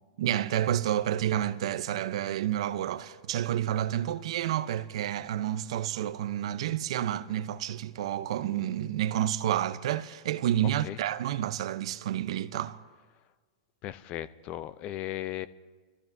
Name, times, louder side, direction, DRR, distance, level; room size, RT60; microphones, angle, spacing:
voice 1, 0.2-12.8, right 11 dB, 65° right, 0.6 m, -30 dB
voice 2, 13.8-15.5, left 13 dB, 35° left, 0.5 m, -36 dB
28.5 x 14.0 x 2.7 m
hypercardioid pair, 130°, 3 cm